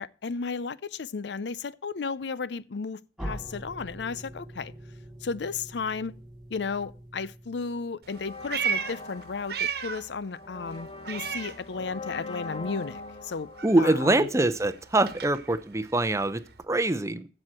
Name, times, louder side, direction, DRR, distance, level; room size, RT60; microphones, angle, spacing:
voice 1, 0.0-4.7 5.2-6.1 6.5-13.5 13.8-14.3, left 4 dB, 75° left, 0.5 m, -34 dB
sound 1, 3.2-8.0, equal, ahead, 3.9 m, -43 dB
Meow, 8.0-10.2 10.5-12.2 12.5-16.6, right 7 dB, 60° right, 1.2 m, -35 dB
sound 2, 8.1-14.9, left 3 dB, 35° left, 1.3 m, -42 dB
voice 2, 13.6-17.3, right 2 dB, 15° right, 0.7 m, -24 dB
15.0 x 6.4 x 4.3 m
head